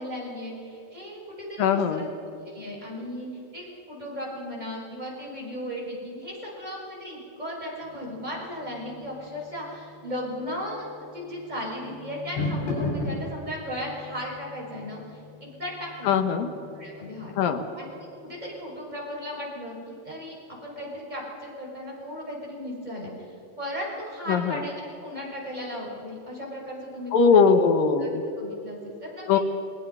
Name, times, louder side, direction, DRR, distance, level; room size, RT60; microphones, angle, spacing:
voice 1, 0.0-2.1 2.5-10.9 11.1-16.2 16.7-17.3 17.7-17.9 18.2-27.5 28.0-28.1 28.4-29.3, equal, 10° right, -3 dB, 5.3 m, -36 dB
voice 2, 1.6-2.0 16.1-16.5 17.4-17.6 24.3-24.6 27.1-28.3 29.3-29.4, left 5 dB, 70° left, 7 dB, 2.9 m, -20 dB
sound 1, 7.8-18.6, left 2 dB, 85° left, 6.6 m, -38 dB
29.5 x 19.0 x 5.6 m, 2.9 s
omnidirectional pair, 4.4 m